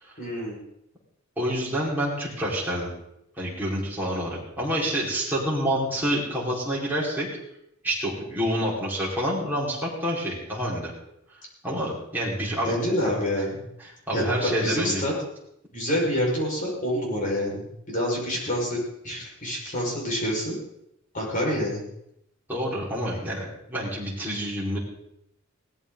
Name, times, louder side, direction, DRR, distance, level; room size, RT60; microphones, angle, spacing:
voice 1, 0.2-0.6 12.6-13.6 14.1-15.1 15.7-18.8 19.0-20.6 21.1-21.8, equal, 40° left, -3 dB, 5.8 m, -27 dB
voice 2, 1.4-2.9 3.4-7.3 7.8-10.9 11.6-12.7 13.0-13.1 14.1-15.0 22.5-24.8, equal, 10° right, -6 dB, 5.0 m, -28 dB
18.5 x 14.0 x 4.1 m, 0.79 s
head